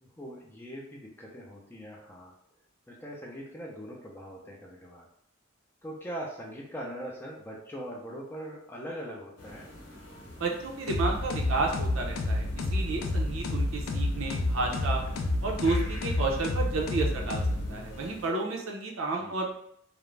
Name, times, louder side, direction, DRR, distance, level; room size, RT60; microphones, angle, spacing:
voice 1, 0.0-2.3 2.9-5.1 5.8-9.7 19.2-19.4, equal, 10° left, -2 dB, 0.4 m, -41 dB
sound 1, 9.4-18.3, equal, 60° left, 0.8 m, -47 dB
voice 2, 10.4-15.0 15.4-17.4 17.7-19.5, right 3 dB, 85° right, 1 dB, 0.6 m, -31 dB
sound 2, 10.9-18.0, left 2 dB, 80° left, 0.4 m, -30 dB
2.4 x 2.0 x 3.1 m, 0.70 s
head